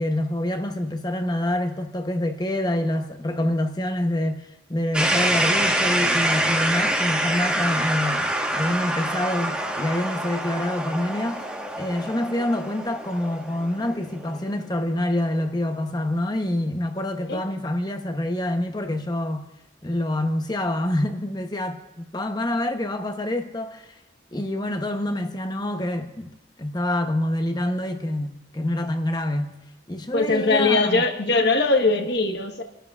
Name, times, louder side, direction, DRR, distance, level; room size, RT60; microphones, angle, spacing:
voice 1, 0.0-11.5 11.8-19.5 19.8-24.0 24.3-29.5 29.9-31.0, left 1 dB, 20° left, 0.8 m, -26 dB
sound 1, 4.9-14.8, right 1 dB, 5° right, 1.3 m, -26 dB
voice 2, 30.1-32.6, left 3 dB, 65° left, 1.2 m, -21 dB
29.0 x 12.0 x 2.4 m
head